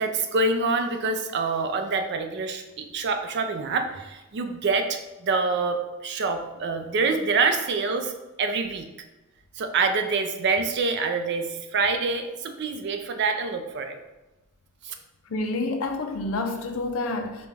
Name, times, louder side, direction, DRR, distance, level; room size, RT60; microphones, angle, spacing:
voice 1, 0.0-8.1 8.4-8.9 9.6-14.0 14.8-14.9, right 4 dB, 55° right, 0.4 m, -26 dB
voice 2, 15.3-17.5, left 2 dB, 70° left, 0.5 m, -28 dB
5.0 x 2.2 x 3.3 m
head